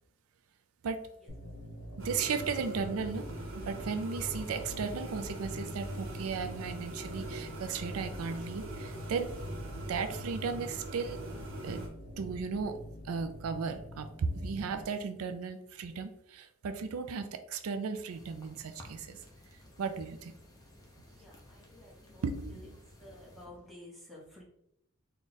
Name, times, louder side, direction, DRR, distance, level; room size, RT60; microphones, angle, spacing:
sound 1, 1.3-14.8, equal, 70° left, 0.9 m, -46 dB
sound 2, 2.0-11.9, right 1 dB, 65° right, 0.9 m, -42 dB
voice 1, 2.0-3.3 3.5-9.3 9.9-11.2 11.6-11.9 12.2-12.8 13.0-19.2 19.8-20.3 22.2-22.8, right 5 dB, 85° right, 8 dB, 0.4 m, -35 dB
sound 3, 18.1-23.5, left 1 dB, 15° left, 0.6 m, -55 dB
voice 2, 21.1-22.7 23.0-24.4, left 1 dB, ahead, -6 dB, 1.1 m, -52 dB
3.7 x 2.3 x 3.9 m, 0.76 s
head